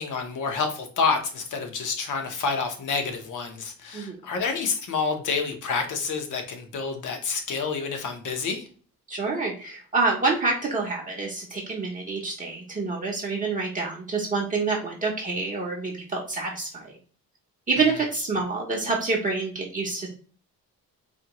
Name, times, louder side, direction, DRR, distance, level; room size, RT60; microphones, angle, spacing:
voice 1, 0.0-8.7, left 5 dB, 55° left, 5 dB, 1.0 m, -28 dB
voice 2, 9.1-16.9 17.7-20.1, right 3 dB, 25° right, -3 dB, 0.7 m, -27 dB
4.3 x 2.8 x 2.9 m, 0.41 s
cardioid pair, 180°, 36 cm